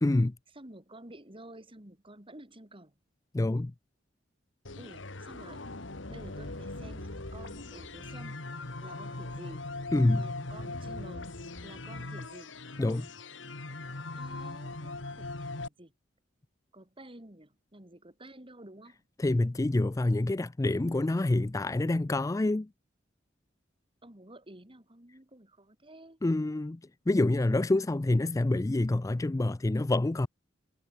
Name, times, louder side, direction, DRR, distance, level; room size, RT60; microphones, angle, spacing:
voice 1, 0.0-0.3 3.3-3.7 9.9-10.3 12.8-13.1 19.2-22.7 26.2-26.8 27.1-30.3, left 2 dB, 15° left, 0.4 m, -27 dB
voice 2, 0.5-2.9 4.8-5.6 6.1-8.4 8.8-9.7 10.1-11.3 11.6-12.5 14.2-15.9 16.7-19.0 24.0-26.2, right 1 dB, 30° right, 4.2 m, -51 dB
sound 1, 4.6-15.7, left 2 dB, 75° left, 2.2 m, -40 dB
head